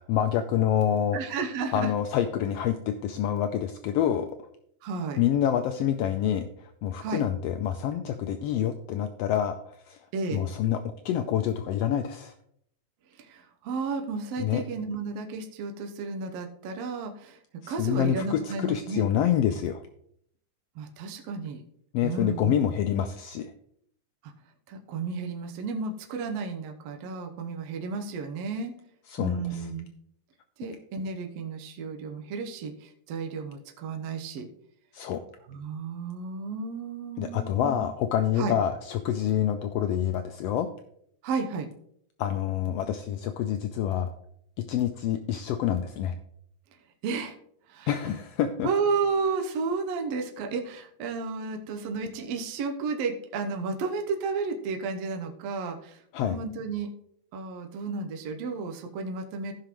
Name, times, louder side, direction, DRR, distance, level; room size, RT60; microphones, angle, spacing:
voice 1, 0.0-1.2 1.7-4.3 5.2-9.5 9.9-10.0 10.3-10.8 11.0-12.3 14.4-14.6 17.6-19.8 21.9-23.5 29.1-29.7 34.9-35.2 37.2-40.7 42.2-44.1 44.6-46.2 47.9-48.7 56.1-56.4, left 10 dB, 85° left, 7 dB, 1.4 m, -27 dB
voice 2, 1.1-1.9 4.8-5.2 7.0-7.2 10.1-10.5 13.1-17.4 17.7-19.1 20.8-21.6 22.0-22.6 24.2-24.3 24.7-28.7 29.2-29.9 30.6-34.5 35.5-37.8 38.4-38.6 41.2-41.7 47.0-47.4 47.7-47.9 48.6-56.9 57.3-59.5, right 4 dB, 70° right, 4 dB, 1.9 m, -32 dB
15.0 x 5.8 x 3.0 m, 0.69 s
omnidirectional pair, 3.3 m